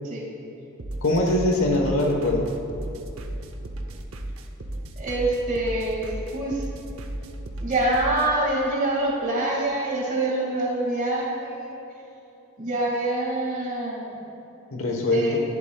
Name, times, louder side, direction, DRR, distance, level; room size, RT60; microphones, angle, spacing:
sound 1, 0.8-8.3, right 1 dB, 70° right, 0.7 m, -35 dB
voice 1, 1.0-2.5 14.7-15.4, left 1 dB, 70° left, 1 dB, 1.1 m, -22 dB
voice 2, 5.0-6.6 7.6-11.7 12.6-14.2 15.1-15.4, right 2 dB, 40° right, -3 dB, 2.0 m, -25 dB
11.0 x 11.0 x 2.3 m, 2.9 s
head